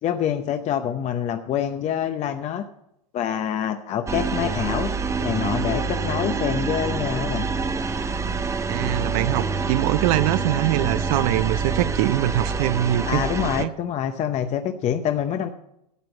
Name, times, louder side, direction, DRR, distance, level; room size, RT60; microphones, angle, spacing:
voice 1, 0.0-2.6 3.1-4.9 5.2-7.5 13.1-15.5, left 9 dB, 35° left, 0.7 m, -26 dB
sound 1, 4.1-13.7, right 4 dB, 15° right, 0.7 m, -26 dB
voice 2, 8.7-13.2 13.6-13.7, right 14 dB, 60° right, 0.5 m, -23 dB
12.5 x 7.6 x 7.0 m
hypercardioid pair, 100°, 20 cm